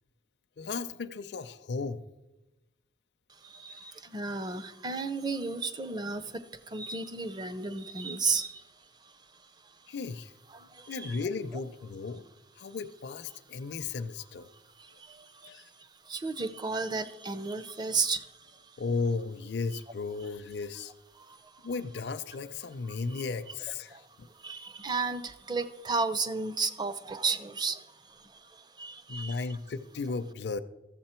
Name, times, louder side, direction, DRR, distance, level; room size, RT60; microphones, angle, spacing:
voice 1, 0.6-2.0 9.9-10.3 10.9-12.2 12.6-14.5 15.4-15.6 18.8-20.9 21.6-24.3 29.1-30.6, left 4 dB, 65° left, 8 dB, 0.5 m, -35 dB
voice 2, 3.4-8.6 9.0-9.1 10.5-11.2 14.8-15.7 16.1-18.8 21.2-21.4 22.9-23.2 23.9-24.1 24.3-29.4, right 4 dB, 25° right, 12 dB, 0.5 m, -34 dB
13.5 x 7.2 x 4.4 m, 1.0 s
head